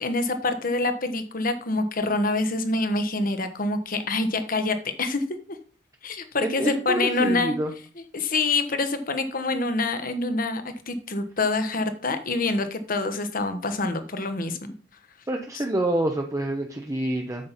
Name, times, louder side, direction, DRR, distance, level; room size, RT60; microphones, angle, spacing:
voice 1, 0.0-5.2 6.0-7.6 8.1-14.6 15.5-15.6, left 2 dB, 50° left, 9 dB, 1.2 m, -26 dB
voice 2, 6.4-7.7 15.3-17.5, right 1 dB, 15° right, 3 dB, 0.8 m, -27 dB
8.6 x 7.6 x 4.1 m, 0.40 s
head